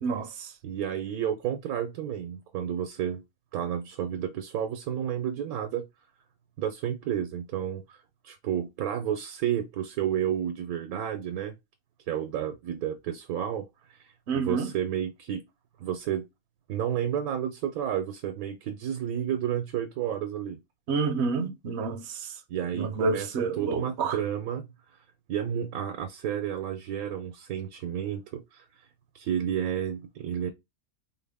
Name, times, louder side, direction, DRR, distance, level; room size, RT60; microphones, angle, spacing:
voice 1, 0.0-0.5 14.3-14.7 20.9-22.4 22.7-24.2, right 4 dB, 65° right, 0.7 m, -29 dB
voice 2, 0.6-3.2 3.5-5.8 6.6-8.0 8.2-11.5 12.1-14.0 14.3-15.4 15.8-16.3 16.7-20.6 22.5-23.3 23.6-24.7 25.3-28.6 29.1-30.5, right 9 dB, 85° right, 1.1 m, -31 dB
4.2 x 2.1 x 3.3 m
omnidirectional pair, 1.5 m